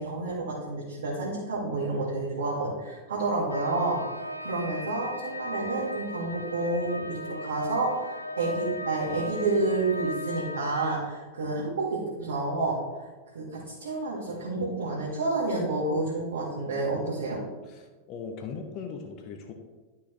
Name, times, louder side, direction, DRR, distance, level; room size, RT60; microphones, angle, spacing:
voice 1, 0.0-13.1 13.3-17.4, right 2 dB, 65° right, -8 dB, 2.0 m, -29 dB
sound 1, 3.5-11.0, left 1 dB, 85° left, 0.4 m, -37 dB
voice 2, 17.6-19.5, left 5 dB, 35° left, 3 dB, 1.0 m, -39 dB
12.0 x 5.7 x 3.2 m, 1.3 s
figure-of-eight pair, 90°, 0 cm